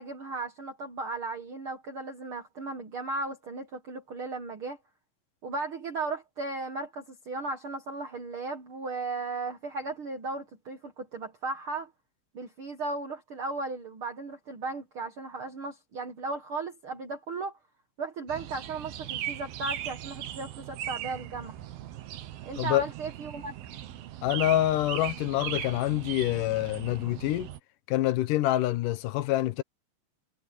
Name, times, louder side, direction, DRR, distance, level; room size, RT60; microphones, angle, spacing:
voice 1, 0.0-4.8 5.4-11.9 12.3-17.5 18.0-21.6 22.4-23.5, right 3 dB, 55° right, 1.6 m, -36 dB
sound 1, 18.3-27.6, right 11 dB, 85° right, 3.2 m, -39 dB
voice 2, 24.2-27.5 27.9-29.6, left 14 dB, 75° left, 2.2 m, -26 dB
omnidirectional pair, 4.1 m